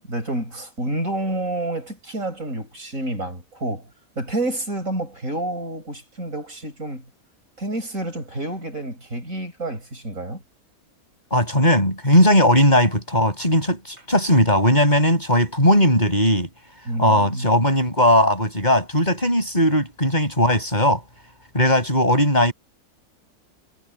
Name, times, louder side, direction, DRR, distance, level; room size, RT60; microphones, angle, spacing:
voice 1, 0.1-3.9 4.2-7.0 7.6-10.4 16.9-17.5, right 1 dB, 65° right, 7.8 m, -29 dB
voice 2, 11.3-16.5 17.0-21.0 21.5-22.5, equal, 30° left, 8.0 m, -18 dB
omnidirectional pair, 1.5 m